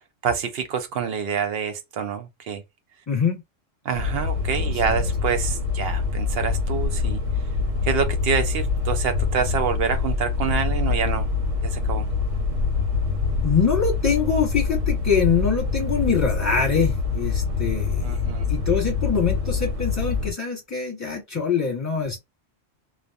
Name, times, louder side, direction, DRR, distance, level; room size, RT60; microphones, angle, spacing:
voice 1, 0.2-2.6 3.9-7.2 7.8-11.3 11.6-12.1 18.0-18.5, right 6 dB, 60° right, 0.7 m, -27 dB
voice 2, 3.1-3.4 4.6-5.1 13.4-18.2 18.5-22.2, left 6 dB, 15° left, 1.2 m, -24 dB
sound 1, 3.9-20.3, left 5 dB, 85° right, 1.2 m, -25 dB
2.5 x 2.3 x 2.4 m
omnidirectional pair, 1.3 m